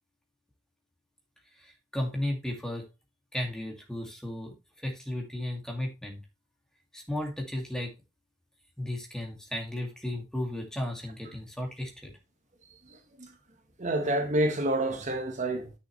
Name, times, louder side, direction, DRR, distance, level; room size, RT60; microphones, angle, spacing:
voice 1, 1.6-2.8 3.3-4.5 4.8-6.2 6.9-7.9 8.8-12.1, left 1 dB, 5° left, 2.2 m, -34 dB
voice 2, 12.9-13.3 13.8-15.7, right 1 dB, 40° right, 1.2 m, -28 dB
10.0 x 6.6 x 3.2 m
head